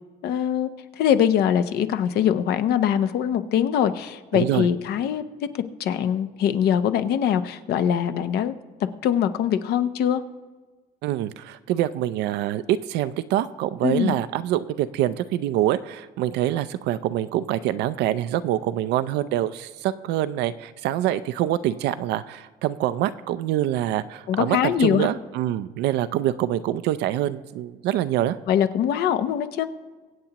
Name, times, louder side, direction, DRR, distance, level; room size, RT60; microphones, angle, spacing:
voice 1, 0.2-0.7 1.0-5.2 5.5-8.5 9.0-10.2 13.8-14.1 24.3-25.1 28.5-29.6, left 9 dB, 70° left, 10 dB, 0.8 m, -22 dB
voice 2, 4.3-4.7 11.0-28.4, right 12 dB, 85° right, 13 dB, 0.5 m, -25 dB
23.5 x 8.1 x 2.9 m, 1.3 s
cardioid pair, 110°, 17 cm